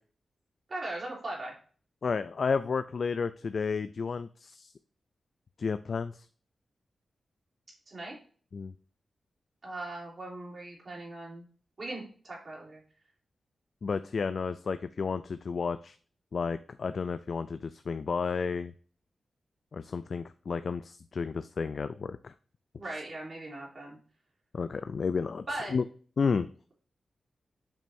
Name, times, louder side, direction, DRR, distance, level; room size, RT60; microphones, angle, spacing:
voice 1, 0.7-1.5 7.9-8.2 9.6-11.5 11.8-12.8 22.8-24.0 25.5-25.8, right 2 dB, 45° right, -3 dB, 3.5 m, -39 dB
voice 2, 2.0-4.7 5.6-6.3 8.5-8.7 13.8-16.0 16.3-18.7 19.7-22.3 24.5-25.8 26.2-26.5, left 5 dB, 60° left, 12 dB, 0.3 m, -32 dB
7.5 x 5.2 x 2.7 m, 0.42 s
wide cardioid pair, 100°, 0 cm